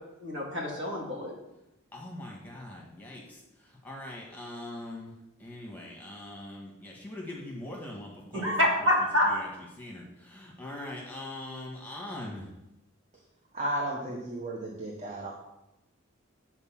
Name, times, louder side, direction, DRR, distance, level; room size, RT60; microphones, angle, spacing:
voice 1, 0.2-1.3 8.3-9.3, left 1 dB, 55° right, -2 dB, 2.2 m, -26 dB
voice 2, 1.9-5.1 5.4-8.9 9.2-9.5 9.8-12.5, left 1 dB, 10° left, -2 dB, 1.4 m, -42 dB
voice 3, 13.5-15.3, right 1 dB, 30° right, -1 dB, 0.9 m, -33 dB
8.1 x 4.6 x 5.9 m, 0.90 s
head